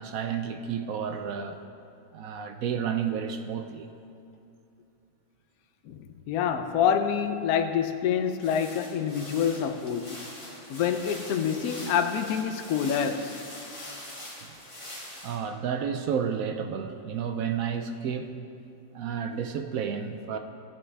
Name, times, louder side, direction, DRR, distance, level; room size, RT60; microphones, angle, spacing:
voice 1, 0.0-1.6 2.1-3.9 15.2-18.4 18.9-20.4, right 7 dB, 70° right, 7 dB, 0.9 m, -31 dB
voice 2, 5.9-10.2 10.7-13.4, left 8 dB, 70° left, 7 dB, 1.0 m, -27 dB
sound 1, 8.4-15.4, left 1 dB, 20° left, 1.7 m, -43 dB
16.5 x 8.8 x 3.3 m, 2.6 s
omnidirectional pair, 1.7 m